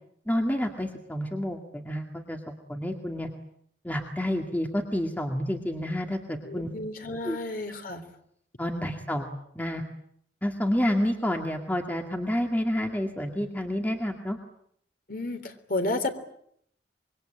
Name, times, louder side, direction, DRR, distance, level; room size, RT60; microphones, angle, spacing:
voice 1, 0.3-3.3 3.8-6.7 7.2-7.4 8.6-9.8 10.4-14.4, equal, 10° left, 3 dB, 2.1 m, -29 dB
voice 2, 6.4-8.1 15.1-16.1, left 2 dB, 50° left, 7 dB, 3.3 m, -32 dB
26.0 x 23.5 x 8.9 m, 0.70 s
head